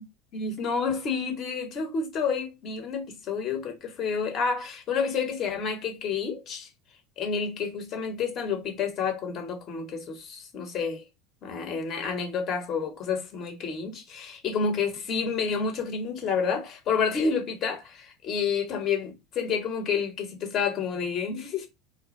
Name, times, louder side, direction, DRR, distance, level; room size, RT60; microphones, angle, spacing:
voice 1, 0.3-6.7 7.2-11.0 11.4-21.7, left 5 dB, 50° left, 1.1 m, -29 dB
2.7 x 2.2 x 3.2 m
hypercardioid pair, 80°, 0 cm